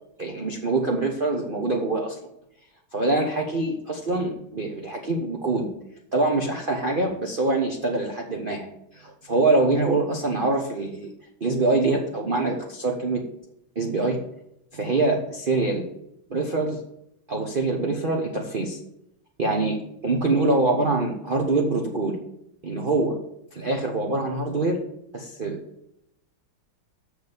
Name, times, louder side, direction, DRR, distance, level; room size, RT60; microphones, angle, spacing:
voice 1, 0.2-2.2 2.9-5.7 6.1-8.7 8.9-11.1 11.4-13.2 13.8-14.3 14.7-15.9 16.3-16.8 17.3-18.8 19.4-19.8 20.0-22.2 22.6-23.2 23.5-24.8 25.1-25.6, right 2 dB, 40° right, 1 dB, 0.8 m, -24 dB
6.8 x 6.5 x 6.8 m, 0.78 s
omnidirectional pair, 2.3 m